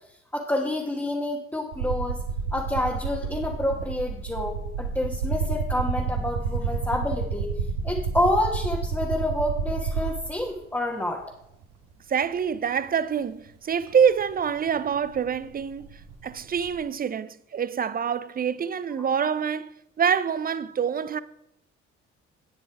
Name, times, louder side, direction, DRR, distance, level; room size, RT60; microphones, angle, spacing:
voice 1, 0.3-2.2 2.5-7.5 7.8-11.2, left 1 dB, 5° left, 1.5 m, -28 dB
sound 1, 1.7-10.5 11.6-11.7 13.9-14.0 14.2-16.8, right 5 dB, 70° right, 1.5 m, -30 dB
voice 2, 12.1-21.2, right 7 dB, 25° right, 0.5 m, -26 dB
9.1 x 7.8 x 4.8 m
figure-of-eight pair, 45°, 33 cm